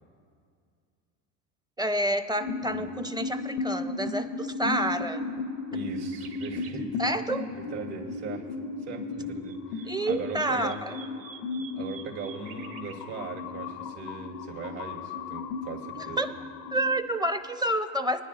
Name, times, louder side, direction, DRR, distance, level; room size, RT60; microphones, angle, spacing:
voice 1, 1.8-5.2 7.0-7.5 9.9-11.0 15.9-16.4 16.7-18.2, right 1 dB, 10° right, 9 dB, 0.5 m, -29 dB
sound 1, 2.4-17.0, left 3 dB, 85° left, 0.6 m, -35 dB
voice 2, 5.7-7.0 7.5-8.5 8.8-10.8 11.7-16.2, right 5 dB, 70° right, -3 dB, 2.4 m, -39 dB
sound 2, 6.0-6.8 9.2-13.0, right 7 dB, 50° right, 1.2 m, -48 dB
22.5 x 10.0 x 2.5 m, 2.2 s
supercardioid pair, 80°, 43 cm